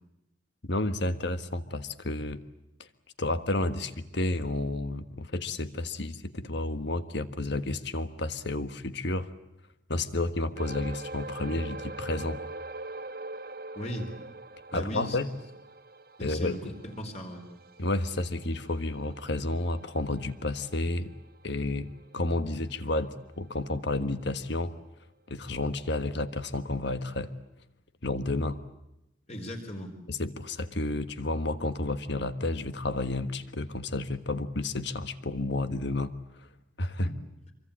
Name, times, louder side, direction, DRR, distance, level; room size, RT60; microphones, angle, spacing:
voice 1, 0.6-2.4 2.8-2.9 3.2-9.3 9.9-12.4 14.7-15.3 16.2-16.6 17.8-21.1 21.4-24.7 25.3-27.3 28.0-28.6 30.1-36.1 36.8-37.1, left 2 dB, 60° left, 11 dB, 1.5 m, -31 dB
sound 1, 10.6-23.3 23.6-23.8 24.3-24.4, right 2 dB, 50° right, 1.3 m, -44 dB
voice 2, 13.7-14.1 14.7-15.2 16.2-17.4 29.3-29.9 37.0-37.1, equal, 35° left, 4 dB, 4.4 m, -37 dB
25.5 x 24.0 x 8.9 m, 0.87 s
head